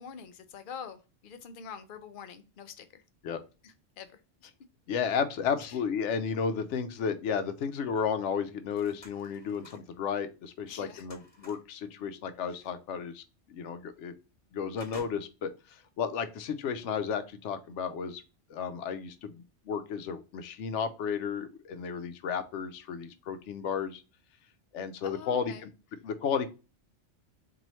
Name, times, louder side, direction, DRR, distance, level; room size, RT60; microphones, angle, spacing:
voice 1, 0.0-3.0 3.6-4.5 5.6-5.8 10.7-11.1 25.0-25.6, left 7 dB, 55° left, 10 dB, 0.6 m, -45 dB
voice 2, 4.9-14.1 14.5-18.2 18.5-24.0 24.7-25.7 26.0-26.5, left 6 dB, 85° left, 10 dB, 0.9 m, -33 dB
sound 1, 8.6-10.0 10.4-11.7 12.9-13.0 13.4-13.5 14.0-14.4 14.8-15.6 16.0-16.1, left 2 dB, 30° left, 1.1 m, -53 dB
3.1 x 2.7 x 4.1 m, 0.31 s
omnidirectional pair, 1.2 m